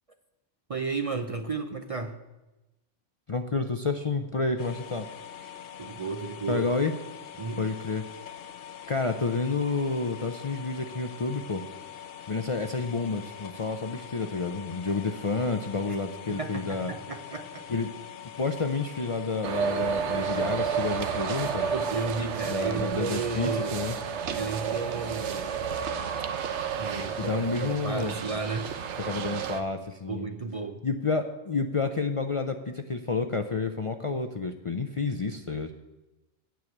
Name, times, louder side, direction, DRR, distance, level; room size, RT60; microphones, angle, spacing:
voice 1, 0.7-2.2 5.8-6.7 7.4-7.7 16.3-17.7 21.7-23.8 24.3-25.7 26.7-28.7 30.1-30.8, right 4 dB, 40° right, 6 dB, 0.6 m, -33 dB
voice 2, 3.3-5.1 6.5-6.9 7.6-8.0 8.9-11.6 12.3-16.9 17.7-17.9 18.4-21.7 22.5-24.0 27.2-28.1 29.0-30.3 30.8-35.7, left 4 dB, 40° left, 6 dB, 0.5 m, -30 dB
sound 1, 4.6-21.9, left 9 dB, 60° left, 0.8 m, -44 dB
sound 2, 19.4-29.6, right 7 dB, 85° right, 1.0 m, -31 dB
9.3 x 6.4 x 8.5 m, 1.0 s
omnidirectional pair, 1.1 m